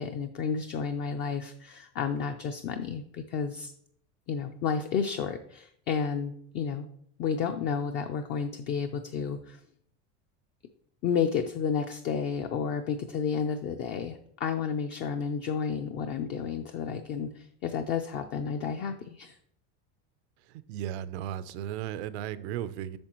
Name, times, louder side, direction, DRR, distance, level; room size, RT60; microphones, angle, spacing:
voice 1, 0.0-3.7 4.3-6.9 7.2-9.6 11.0-19.4, left 6 dB, 35° left, 0.4 m, -31 dB
voice 2, 20.4-23.0, right 11 dB, 90° right, 0.6 m, -35 dB
8.6 x 6.1 x 3.0 m
cardioid pair, 160°, 32 cm